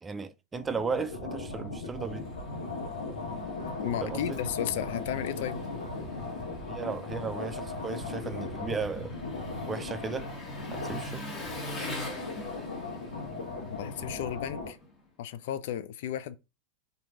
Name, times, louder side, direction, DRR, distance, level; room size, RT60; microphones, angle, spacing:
voice 1, 0.0-2.3 4.0-4.4 6.7-9.2 9.7-10.3 10.7-11.5, right 5 dB, 15° right, 0.4 m, -35 dB
sound 1, 0.5-14.7, left 3 dB, 75° left, 1.0 m, -38 dB
Engine, 1.5-15.1, left 1 dB, 20° left, 1.2 m, -44 dB
voice 2, 3.8-5.6 13.6-14.8 15.2-16.4, left 10 dB, 55° left, 0.4 m, -34 dB
4.4 x 2.7 x 3.6 m
figure-of-eight pair, 85°, 0 cm